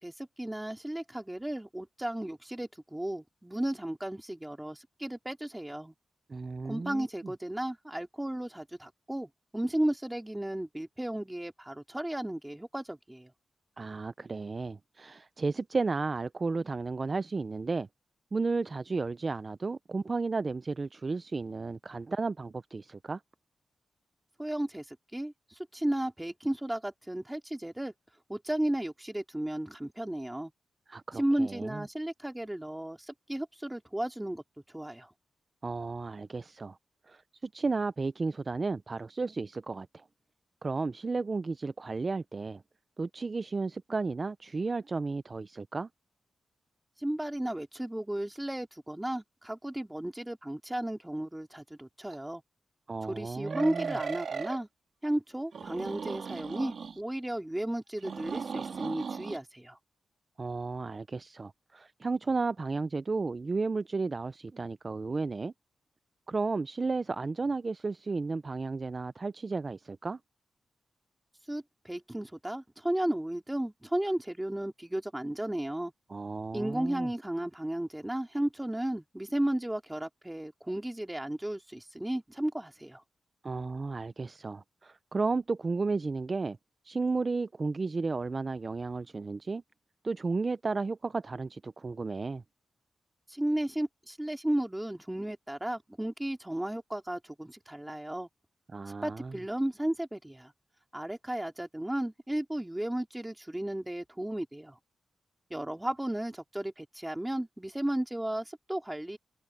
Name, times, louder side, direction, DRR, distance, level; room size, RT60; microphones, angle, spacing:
voice 1, 0.0-5.9 6.6-13.3 24.4-27.9 28.3-30.5 31.1-34.4 34.7-35.1 47.0-52.4 53.0-54.7 55.0-59.8 71.5-75.9 76.5-83.0 93.3-98.3 99.0-100.5 100.9-104.8 105.5-109.2, right 1 dB, 10° right, 2.8 m, -34 dB
voice 2, 6.3-7.3 13.8-17.9 18.3-23.2 30.9-31.8 35.6-36.8 37.1-40.0 40.6-42.6 43.0-45.9 52.9-54.0 60.4-65.5 66.3-70.2 76.1-77.1 83.4-86.6 86.8-89.6 90.0-92.4 98.7-99.4, right 3 dB, 35° right, 0.5 m, -33 dB
sound 1, 52.1-52.2 53.4-54.6 55.5-57.0 58.0-59.4, right 6 dB, 65° right, 2.2 m, -37 dB
wide cardioid pair, 95°, 0 cm